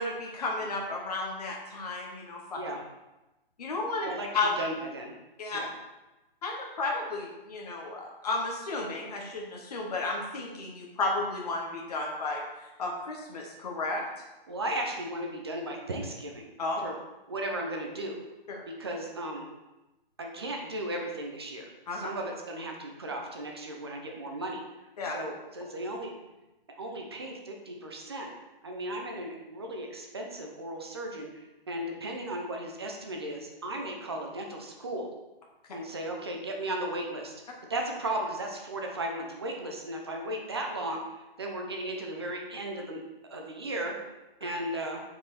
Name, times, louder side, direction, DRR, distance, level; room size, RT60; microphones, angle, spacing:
voice 1, 0.0-2.6 3.6-4.5 5.4-5.6 6.4-14.0 16.6-16.8 18.5-18.6 21.9-22.1 25.0-25.2 44.4-44.5, left 3 dB, 40° left, -1 dB, 1.0 m, -33 dB
voice 2, 4.0-5.1 5.5-5.7 14.5-16.5 16.8-16.9 17.3-18.2 18.7-19.5 20.2-21.6 21.9-24.6 25.0-26.1 26.8-28.3 28.6-35.1 35.7-37.3 37.7-43.0 43.3-44.1 44.4-45.0, right 1 dB, 25° right, 1 dB, 0.6 m, -36 dB
6.0 x 4.7 x 4.1 m, 1.0 s
hypercardioid pair, 175°, 30 cm